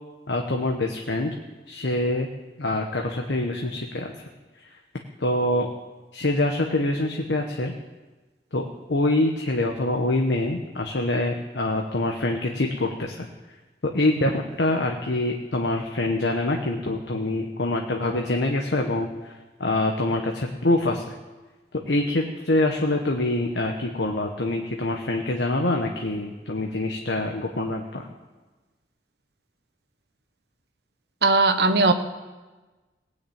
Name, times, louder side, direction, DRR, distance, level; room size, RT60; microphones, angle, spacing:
voice 1, 0.3-1.3 1.7-2.3 2.6-4.1 4.6-4.7 5.2-5.7 6.1-7.7 8.5-13.3 13.8-19.3 19.6-21.1 21.9-28.1, left 2 dB, 90° left, 2 dB, 1.2 m, -25 dB
voice 2, 31.2-31.9, right 3 dB, 65° right, 8 dB, 1.1 m, -18 dB
18.5 x 6.5 x 8.8 m, 1.2 s
head